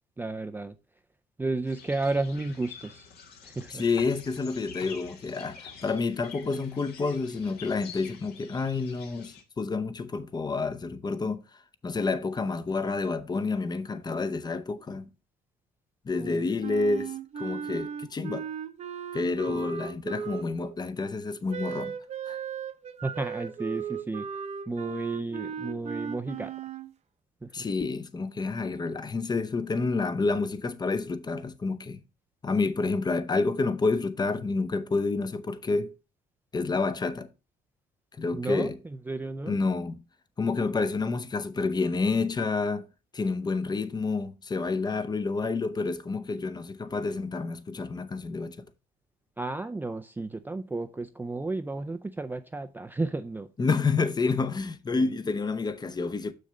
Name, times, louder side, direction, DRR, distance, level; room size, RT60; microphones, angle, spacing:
voice 1, 0.2-0.7 1.4-3.1 3.4-3.8 16.2-16.5 19.5-19.7 23.0-24.3 24.7-26.5 27.4-27.6 38.3-39.6 49.4-53.5 54.9-55.1, right 2 dB, 10° right, 0.5 m, -33 dB
sound 1, 1.7-9.4, left 6 dB, 70° left, 1.9 m, -47 dB
voice 2, 3.7-11.4 11.8-15.0 16.0-18.5 19.1-22.0 22.3-22.4 27.5-32.0 32.4-35.9 36.5-37.3 38.2-38.8 39.5-40.0 40.4-42.9 43.1-48.6 53.6-56.3, left 4 dB, 25° left, 0.8 m, -29 dB
Wind instrument woodwind instrument, 16.6-20.8 21.5-26.9, right 7 dB, 40° right, 0.8 m, -37 dB
6.5 x 6.5 x 3.3 m
cardioid pair, 110°, 17 cm